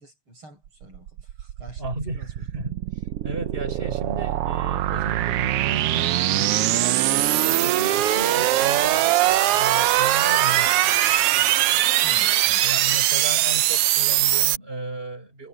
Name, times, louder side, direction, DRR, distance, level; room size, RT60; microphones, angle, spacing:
voice 1, 0.0-1.9 2.1-2.3 12.0-12.7, right 1 dB, 40° right, 8.0 m, -47 dB
sound 1, 0.8-14.6, right 14 dB, 80° right, 1.3 m, -21 dB
voice 2, 1.8-11.5 12.6-15.5, right 2 dB, 15° right, 7.2 m, -35 dB
omnidirectional pair, 3.5 m